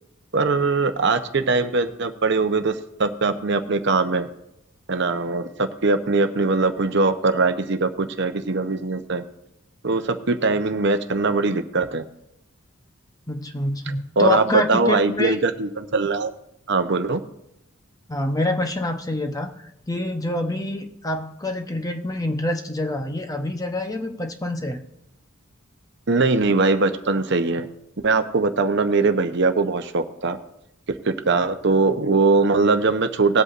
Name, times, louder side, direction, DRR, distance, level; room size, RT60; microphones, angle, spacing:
voice 1, 0.3-4.3 4.9-9.2 9.8-12.0 14.2-16.3 16.7-17.2 26.1-27.7 28.0-30.4 31.0-33.4, right 3 dB, 55° right, 8 dB, 0.8 m, -21 dB
voice 2, 13.3-15.4 18.1-19.5 19.9-24.8, left 1 dB, 15° left, 6 dB, 0.8 m, -26 dB
19.5 x 8.1 x 2.5 m, 0.82 s
head